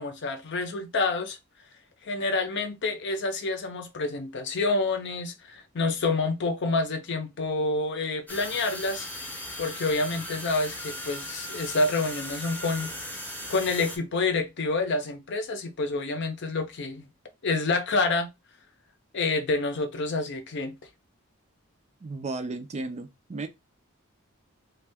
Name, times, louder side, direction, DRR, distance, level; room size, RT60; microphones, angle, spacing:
voice 1, 0.0-1.4 2.1-9.1 9.6-12.9 13.5-17.1 17.4-18.3 19.1-20.7, left 3 dB, 55° left, 0.6 m, -28 dB
sound 1, 8.3-14.0, left 1 dB, 10° left, 0.7 m, -38 dB
voice 2, 22.0-23.5, right 3 dB, 30° right, 0.4 m, -34 dB
2.6 x 2.3 x 3.4 m
head